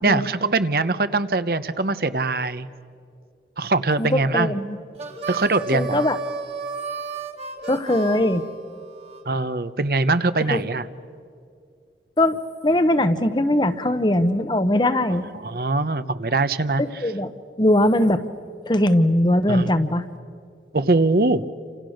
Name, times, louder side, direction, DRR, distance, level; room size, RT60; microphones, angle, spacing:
voice 1, 0.0-2.7 3.6-4.5 5.3-6.0 9.3-10.9 15.4-16.8 19.5-19.9 20.7-21.4, right 3 dB, 55° right, 12 dB, 0.8 m, -22 dB
voice 2, 4.0-4.8 5.7-6.2 7.7-8.4 10.5-10.6 12.2-15.2 16.8-17.3 17.6-18.2 18.7-20.0, left 1 dB, 25° left, 11 dB, 0.9 m, -20 dB
Harmonica, 4.9-9.2, right 4 dB, 35° right, 1.7 m, -33 dB
30.0 x 27.5 x 6.5 m, 2.3 s
head